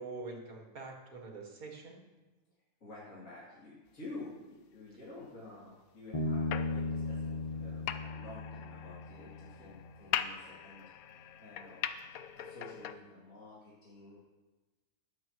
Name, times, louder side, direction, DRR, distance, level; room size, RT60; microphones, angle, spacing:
voice 1, 0.0-2.0, right 3 dB, 65° right, 0 dB, 2.2 m, -45 dB
voice 2, 2.8-11.8 12.3-14.2, left 2 dB, 55° left, -8 dB, 3.1 m, -50 dB
Bass guitar, 6.1-9.6, left 3 dB, 30° left, 0.8 m, -36 dB
sound 1, 6.5-12.9, left 9 dB, 75° left, 1.0 m, -41 dB
21.0 x 8.0 x 3.1 m, 1.2 s
omnidirectional pair, 1.6 m